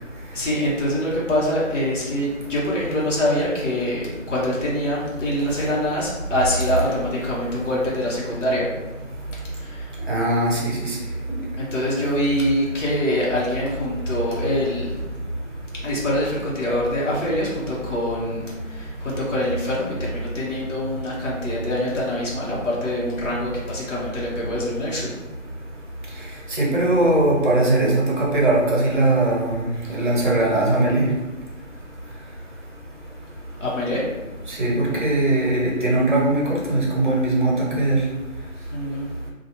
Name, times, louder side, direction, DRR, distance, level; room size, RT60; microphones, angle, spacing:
voice 1, 0.3-8.6 9.5-9.9 11.6-15.0 15.8-25.1 29.8-30.0 33.6-34.1 38.7-39.1, left 1 dB, 60° left, -5 dB, 1.1 m, -25 dB
voice 2, 10.1-11.0 26.5-31.1 34.5-38.0, right 2 dB, 35° right, -3 dB, 0.7 m, -20 dB
2.9 x 2.4 x 2.8 m, 1.1 s
figure-of-eight pair, 165°, 41 cm